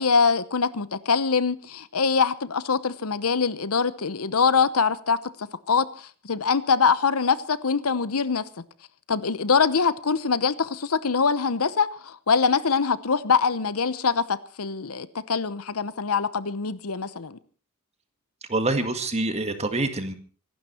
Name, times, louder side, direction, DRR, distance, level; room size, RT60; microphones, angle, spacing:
voice 1, 0.0-8.4 9.1-17.4, left 5 dB, 75° left, 0.9 m, -24 dB
voice 2, 18.5-20.1, right 2 dB, 30° right, 1.9 m, -26 dB
25.0 x 12.0 x 4.4 m
head